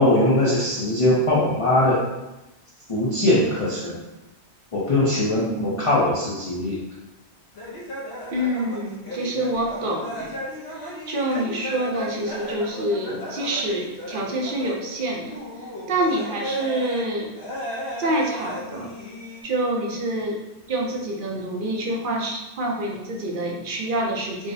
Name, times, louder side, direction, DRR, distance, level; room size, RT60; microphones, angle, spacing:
voice 1, 0.0-2.0 2.9-4.0 4.7-6.8, left 1 dB, 40° left, -7 dB, 0.5 m, -21 dB
sound 1, 7.5-14.9 15.2-17.1 17.3-19.4, equal, 65° left, 0.9 m, -35 dB
voice 2, 8.3-10.4 10.7-17.3 18.0-18.9 19.4-20.4 20.7-24.5, right 1 dB, 55° right, -1 dB, 0.7 m, -27 dB
4.6 x 2.1 x 2.6 m, 1.0 s
omnidirectional pair, 1.2 m